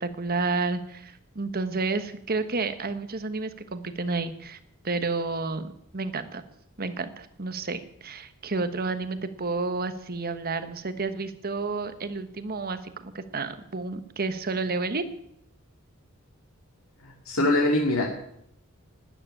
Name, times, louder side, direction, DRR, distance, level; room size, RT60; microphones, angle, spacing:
voice 1, 0.0-4.6 4.8-6.4 6.8-15.0, right 3 dB, 45° right, 10 dB, 1.2 m, -30 dB
voice 2, 17.0-18.1, left 2 dB, 70° left, 0 dB, 2.5 m, -23 dB
12.5 x 9.8 x 9.8 m, 0.71 s
head